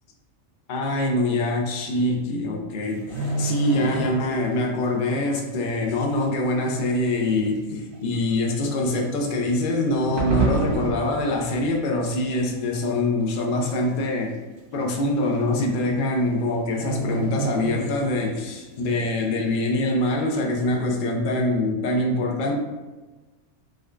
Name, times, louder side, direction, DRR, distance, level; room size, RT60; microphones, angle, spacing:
voice 1, 0.7-14.4 14.7-22.5, left 2 dB, 80° left, 0 dB, 0.4 m, -24 dB
sound 1, 2.8-4.6 4.8-5.1 5.7-5.8 6.7-6.8 7.0-7.1 7.9-8.2 9.3-9.7 9.9-11.5 11.8-12.1 12.6-13.1 13.4-13.5 13.8-13.9 14.3-14.4 15.3-15.4 15.7-16.0 16.3-16.4 16.8-18.4 18.8-18.9, right 2 dB, 60° right, 0.8 m, -30 dB
sound 2, 10.2-13.0, right 3 dB, 45° right, 1.0 m, -28 dB
5.0 x 2.1 x 2.4 m, 1.2 s
omnidirectional pair, 1.5 m